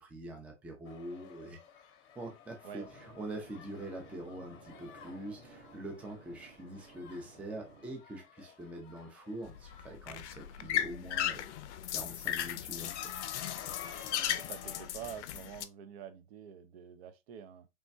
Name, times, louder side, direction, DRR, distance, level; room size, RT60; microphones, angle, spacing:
voice 1, 0.0-1.6 2.2-11.5 11.9-13.1, right 1 dB, 5° right, 0.4 m, -44 dB
sound 1, 0.9-14.9, left 7 dB, 30° left, 0.8 m, -53 dB
sound 2, 2.8-8.0, right 3 dB, 80° right, 1.4 m, -57 dB
sound 3, 9.4-15.6, left 11 dB, 70° left, 0.5 m, -36 dB
voice 2, 14.3-17.7, right 9 dB, 60° right, 0.6 m, -47 dB
3.3 x 2.1 x 2.6 m
hypercardioid pair, 115°, 36 cm